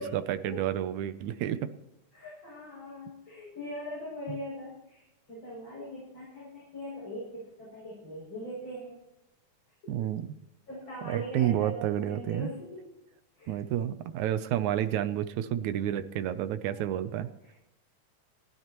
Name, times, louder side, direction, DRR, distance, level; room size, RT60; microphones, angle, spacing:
voice 1, 0.0-1.7 4.3-4.4 9.9-10.3 11.0-12.5 13.5-17.3, right 11 dB, 75° right, 12 dB, 1.9 m, -30 dB
voice 2, 2.1-9.0 10.7-12.8 13.4-13.6 16.6-16.8 17.4-17.6, equal, 35° left, -6 dB, 7.6 m, -41 dB
19.5 x 15.5 x 3.0 m, 0.87 s
omnidirectional pair, 3.7 m